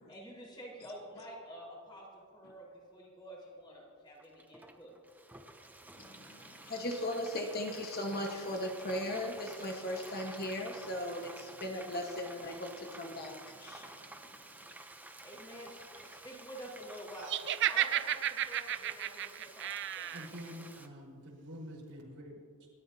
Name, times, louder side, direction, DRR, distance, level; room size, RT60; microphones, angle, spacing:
voice 1, 0.1-4.9 15.2-17.3 17.6-20.1, equal, 20° left, -4 dB, 4.5 m, -49 dB
Frying (food), 4.2-20.9, right 2 dB, 10° right, 0.7 m, -51 dB
voice 2, 6.0-13.9, left 1 dB, 45° left, 2 dB, 1.4 m, -38 dB
Laughter, 17.3-20.3, right 11 dB, 55° right, 0.5 m, -32 dB
voice 3, 20.1-22.7, equal, 75° right, -4 dB, 4.6 m, -47 dB
28.0 x 13.0 x 2.8 m, 2.2 s
head